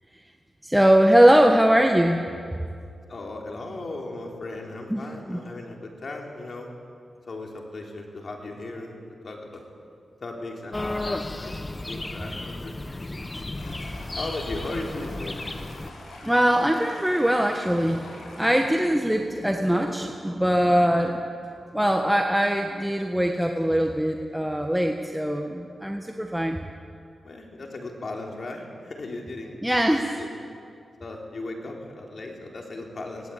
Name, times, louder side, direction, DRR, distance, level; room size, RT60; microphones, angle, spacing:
voice 1, 0.6-2.2 4.9-5.0 5.3-5.4 16.2-21.2 21.7-26.6 29.6-30.1, equal, 5° right, 3 dB, 1.5 m, -21 dB
voice 2, 3.1-6.7 7.3-9.0 9.2-9.6 10.2-11.6 11.9-13.2 14.1-15.4 27.2-29.6 30.1-30.3 31.0-33.3, left 2 dB, 55° left, 0 dB, 3.9 m, -37 dB
sound 1, 10.7-15.9, left 2 dB, 25° left, 1.1 m, -33 dB
Stream, 13.5-18.6, left 2 dB, 85° left, 6.7 m, -45 dB
19.0 x 19.0 x 8.7 m, 2.3 s
cardioid pair, 65°, 0 cm